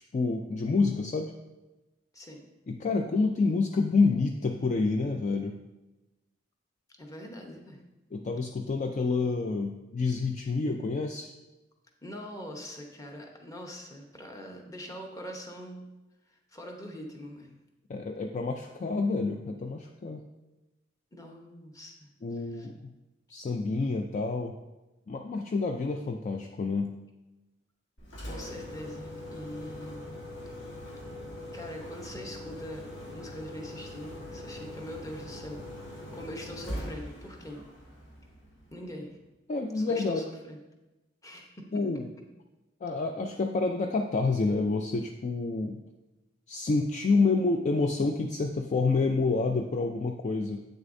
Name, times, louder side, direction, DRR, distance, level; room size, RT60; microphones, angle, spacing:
voice 1, 0.1-1.3 2.7-5.6 8.1-11.3 17.9-20.2 22.2-22.9 23.3-24.6 25.1-27.0 39.5-40.2 41.7-42.1 42.8-45.8 46.5-50.6, left 3 dB, 40° left, 3 dB, 0.4 m, -28 dB
voice 2, 7.0-7.8 12.0-15.8 16.3-17.6 21.1-22.7 28.2-30.2 31.5-32.9 33.1-37.7 38.7-39.1 39.7-40.6 41.2-41.7, equal, 20° left, 1 dB, 0.9 m, -43 dB
Engine, 28.0-38.9, left 1 dB, 70° left, 1.5 m, -42 dB
8.2 x 6.5 x 2.6 m, 1.0 s
head